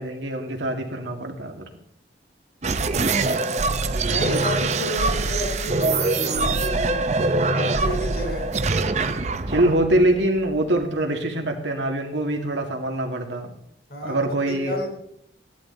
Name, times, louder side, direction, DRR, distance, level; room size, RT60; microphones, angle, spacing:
voice 1, 0.0-1.7 9.5-13.5 14.0-14.8, right 1 dB, 90° right, 2 dB, 2.3 m, -24 dB
sound 1, 2.6-10.8, right 3 dB, 40° right, 0.6 m, -23 dB
voice 2, 2.9-3.5 4.1-7.1 7.5-8.5 13.9-14.9, equal, 60° left, 2 dB, 4.0 m, -31 dB
15.5 x 11.5 x 4.1 m, 0.73 s
head